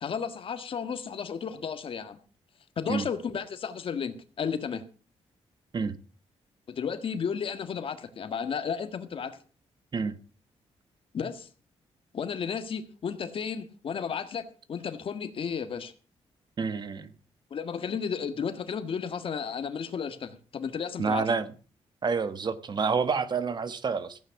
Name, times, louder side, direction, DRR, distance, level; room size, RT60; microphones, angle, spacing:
voice 1, 0.0-2.2 2.8-4.8 6.7-9.4 11.1-11.5 12.1-15.9 17.5-21.3, left 6 dB, 55° left, 1.6 m, -33 dB
voice 2, 16.6-17.1 21.0-21.4 22.0-24.2, right 5 dB, 40° right, 1.2 m, -28 dB
15.0 x 9.2 x 5.8 m
wide cardioid pair, 130°, 11 cm